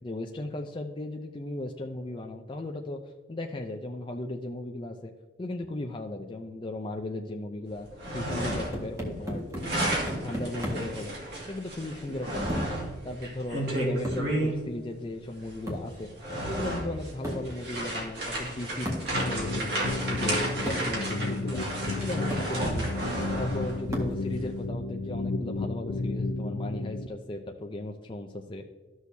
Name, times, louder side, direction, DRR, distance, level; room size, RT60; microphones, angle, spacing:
voice 1, 0.0-5.1 5.4-7.9 8.1-9.5 10.2-11.1 11.5-12.7 13.0-16.1 16.4-19.7 20.1-21.6 22.0-22.9 23.4-28.7, left 1 dB, 25° left, 2 dB, 0.4 m, -36 dB
sound 1, 7.8-8.9 9.2-14.5 15.4-15.5 16.0-23.8, right 1 dB, 55° right, 2.1 m, -32 dB
sound 2, 8.4-11.0 12.5-12.8 14.0-14.3 15.7-16.0 17.2-17.6 18.9-19.2 20.1-20.2 20.7-21.0 21.8-21.9 22.3-22.6 23.9-24.3, equal, 15° right, 1.6 m, -35 dB
sound 3, 19.1-27.1, left 2 dB, 80° left, 0.5 m, -32 dB
13.0 x 6.3 x 2.7 m, 1.3 s
head